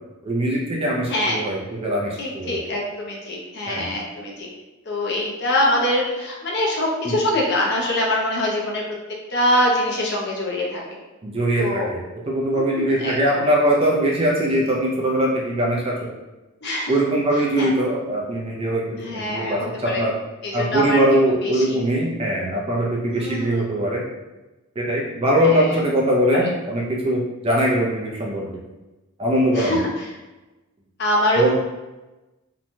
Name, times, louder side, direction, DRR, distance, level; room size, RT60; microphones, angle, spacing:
voice 1, 0.2-2.5 3.7-3.9 7.0-7.1 11.2-12.0 12.3-16.1 16.9-20.1 20.5-24.0 24.8-28.5 29.2-29.8 31.4-31.5, right 1 dB, 25° right, -3 dB, 0.4 m, -21 dB
voice 2, 1.1-1.5 2.2-4.5 4.9-8.8 9.3-10.8 11.6-11.9 12.5-13.4 16.6-16.9 17.6-17.7 19.0-20.0 20.4-21.0 21.4-21.8 23.1-23.6 25.4-25.8 26.3-26.5 29.5-30.1 31.0-31.5, left 1 dB, 50° left, -2 dB, 0.5 m, -24 dB
2.9 x 2.2 x 2.5 m, 1.1 s
head